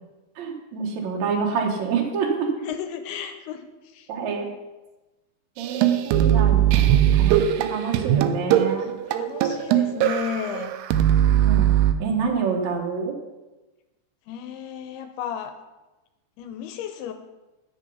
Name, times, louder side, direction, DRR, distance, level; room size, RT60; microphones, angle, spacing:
voice 1, 0.4-2.7 4.1-4.5 5.6-8.9 11.3-11.7 12.0-13.1, right 5 dB, 60° right, 0 dB, 2.0 m, -27 dB
voice 2, 2.6-4.1 9.1-10.7 14.3-15.5 16.4-17.1, left 9 dB, 85° left, 7 dB, 2.4 m, -33 dB
sound 1, 5.6-11.9, right 10 dB, 80° right, 2.5 m, -20 dB
11.0 x 7.9 x 5.5 m, 1.1 s
omnidirectional pair, 5.0 m